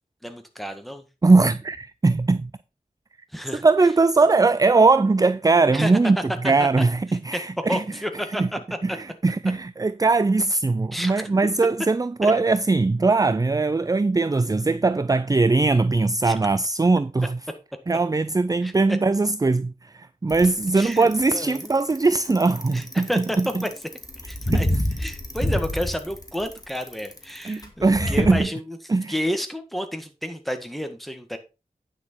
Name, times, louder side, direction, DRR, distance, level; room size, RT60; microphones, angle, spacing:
voice 1, 0.2-1.0 3.3-3.7 5.7-5.9 6.4-6.8 7.3-7.4 7.7-8.6 10.9-11.3 12.2-12.3 16.2-16.4 18.6-19.0 20.7-21.7 22.7-23.4 23.6-23.7 24.3-24.7 25.0-28.8 29.1-31.4, equal, ahead, 1.8 m, -30 dB
voice 2, 1.2-2.5 3.5-6.2 6.4-7.8 8.4-8.5 8.8-17.4 17.9-23.6 24.5-24.6 27.4-28.5 28.9-29.1, right 3 dB, 25° right, 0.4 m, -20 dB
Bicycle, 20.3-28.4, left 1 dB, 25° left, 2.1 m, -28 dB
9.7 x 6.4 x 4.5 m
wide cardioid pair, 70°, 15 cm